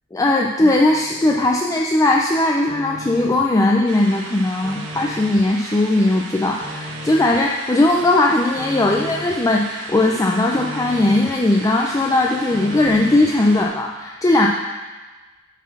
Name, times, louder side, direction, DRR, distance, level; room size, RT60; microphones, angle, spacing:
voice 1, 0.1-14.5, left 2 dB, 15° left, -1 dB, 0.4 m, -18 dB
sound 1, 0.7-1.6 2.0-3.6 3.9-5.5 5.9-7.5 7.9-9.5 9.8-11.4 11.8-13.4, left 1 dB, 25° right, 1.1 m, -37 dB
sound 2, 3.9-13.7, right 3 dB, 65° right, 1.1 m, -36 dB
8.4 x 4.1 x 5.9 m, 1.3 s
head